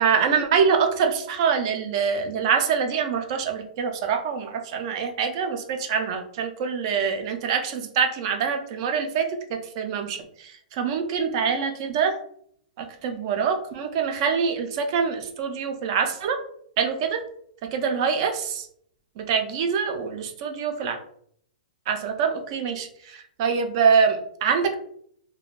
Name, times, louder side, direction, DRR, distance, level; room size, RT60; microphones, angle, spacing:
voice 1, 0.0-12.2 12.8-16.4 16.8-17.2 17.7-18.7 19.2-21.0 21.9-24.7, right 6 dB, 35° right, 5 dB, 0.4 m, -25 dB
2.4 x 2.1 x 3.0 m, 0.65 s
hypercardioid pair, 160°, 5 cm